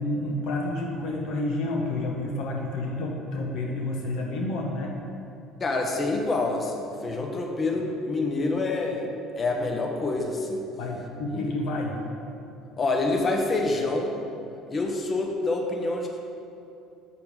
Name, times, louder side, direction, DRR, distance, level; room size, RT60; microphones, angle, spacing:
voice 1, 0.0-4.9 10.8-12.0, left 2 dB, 65° left, 0 dB, 1.0 m, -29 dB
voice 2, 5.6-9.1 9.4-10.7 11.3-11.5 12.8-14.1 14.7-16.2, left 2 dB, 35° left, 2 dB, 1.2 m, -27 dB
7.3 x 6.7 x 4.9 m, 2.7 s
hypercardioid pair, 65°, 0 cm